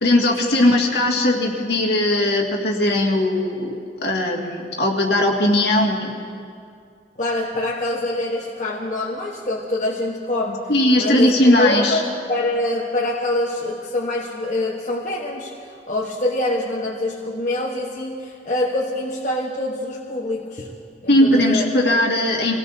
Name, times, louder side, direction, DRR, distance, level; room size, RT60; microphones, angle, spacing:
voice 1, 0.0-6.2 10.7-12.0 21.1-22.5, left 1 dB, 65° left, 0 dB, 2.0 m, -18 dB
voice 2, 7.2-15.6 15.9-20.7 21.0-21.6, left 1 dB, 45° left, -3 dB, 1.2 m, -25 dB
25.5 x 17.5 x 2.8 m, 2.3 s
head